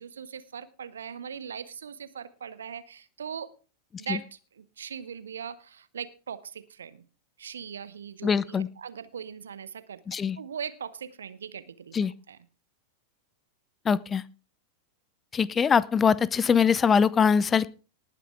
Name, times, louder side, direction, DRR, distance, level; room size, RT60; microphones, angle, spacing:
voice 1, 0.0-3.5 4.0-7.0 7.4-10.0 10.4-12.5, right 7 dB, 70° right, 16 dB, 1.0 m, -40 dB
voice 2, 8.2-8.7 10.1-10.4 11.9-12.1 13.9-14.2 15.3-17.7, left 6 dB, 20° left, 21 dB, 0.6 m, -22 dB
19.0 x 9.2 x 3.5 m, 0.34 s
figure-of-eight pair, 90°, 0 cm